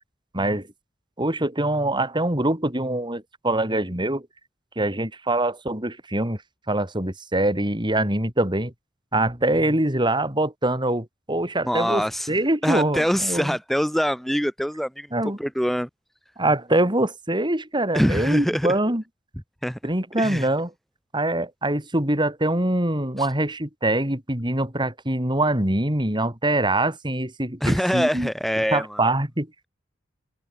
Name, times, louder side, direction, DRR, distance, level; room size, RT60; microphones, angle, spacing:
voice 1, 0.3-0.7 1.2-4.3 4.8-6.4 6.7-8.7 9.1-13.6 15.1-15.4 16.4-19.0 19.8-20.7 21.1-28.3 28.7-29.7, right 1 dB, 25° right, 4.6 m, -24 dB
voice 2, 11.6-15.1 15.4-15.9 17.9-18.7 19.6-19.8 20.2-20.5 23.2-23.3 27.6-29.0, equal, ahead, 3.4 m, -24 dB
head